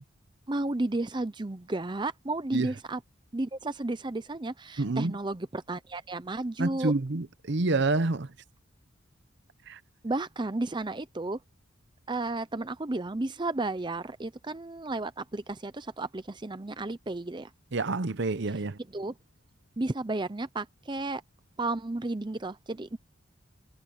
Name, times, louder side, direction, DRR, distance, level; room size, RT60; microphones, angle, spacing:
voice 1, 0.5-3.0 3.3-6.9 10.0-11.4 12.1-17.5 18.9-19.1 19.8-21.2 21.6-23.0, right 2 dB, 20° right, 0.6 m, -33 dB
voice 2, 4.8-5.2 6.6-8.3 9.7-9.8 17.7-18.8, right 3 dB, 55° right, 0.8 m, -28 dB
head